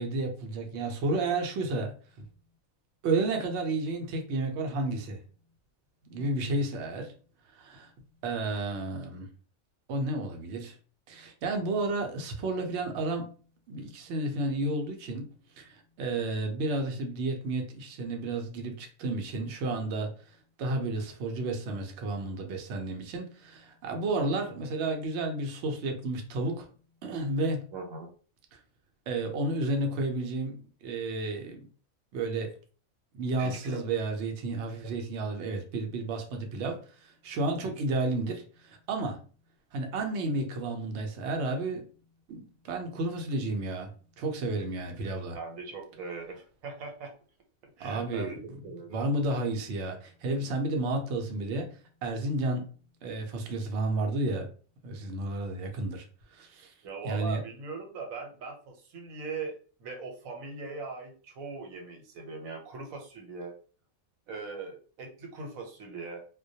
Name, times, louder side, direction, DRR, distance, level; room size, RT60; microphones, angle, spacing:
voice 1, 0.0-1.9 3.0-5.2 6.1-7.1 7.5-7.9 8.2-9.3 9.9-10.8 11.1-13.3 13.7-15.3 15.6-20.1 20.6-26.7 27.0-27.6 29.1-31.6 32.1-32.5 33.1-39.2 39.7-41.8 42.3-45.4 47.8-48.4 48.9-51.7 52.0-52.7 53.0-54.5 54.8-56.1 56.3-56.7 57.0-57.4, right 2 dB, 65° right, 0.8 m, -31 dB
voice 2, 6.2-6.6 27.7-28.1 33.4-33.8 34.8-34.9 45.3-47.1 47.8-49.0 56.8-63.5 64.3-66.2, right 4 dB, 80° right, 1.1 m, -40 dB
2.2 x 2.2 x 2.6 m
omnidirectional pair, 1.4 m